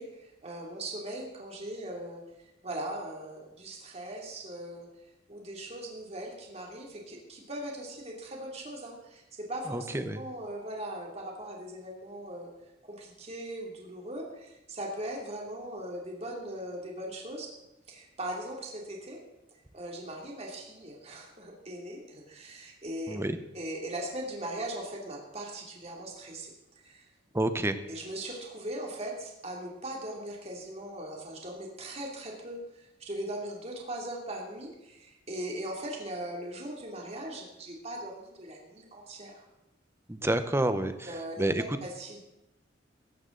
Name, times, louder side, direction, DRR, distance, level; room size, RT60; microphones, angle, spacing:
voice 1, 0.0-2.2 2.6-4.9 5.3-12.5 12.8-17.5 17.9-19.2 19.7-23.2 23.5-27.1 27.9-39.5 41.1-41.4 41.8-42.2, right 1 dB, 35° right, -1 dB, 2.7 m, -39 dB
voice 2, 9.7-10.2 23.1-23.4 27.3-27.8 40.1-40.9 41.4-41.6, right 1 dB, 15° right, 10 dB, 0.8 m, -28 dB
17.0 x 13.0 x 3.9 m, 0.90 s
head